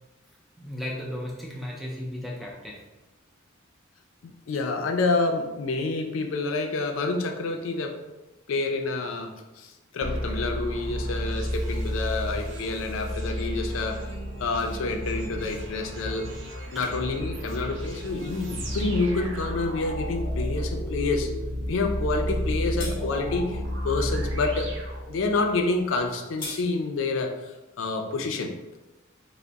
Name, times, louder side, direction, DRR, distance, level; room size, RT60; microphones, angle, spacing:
voice 1, 0.6-2.8, left 1 dB, ahead, -4 dB, 0.4 m, -35 dB
voice 2, 4.2-8.0 8.5-14.0 14.4-16.3 16.7-21.3 21.7-23.6 23.8-24.7 25.1-28.5, left 3 dB, 75° left, 4 dB, 0.4 m, -28 dB
sound 1, 10.0-25.6, equal, 65° right, 0.6 m, -32 dB
sound 2, 22.3-22.4 22.8-23.0 26.0-26.6, left 2 dB, 25° left, 0.8 m, -36 dB
3.4 x 2.0 x 3.9 m, 1.1 s
head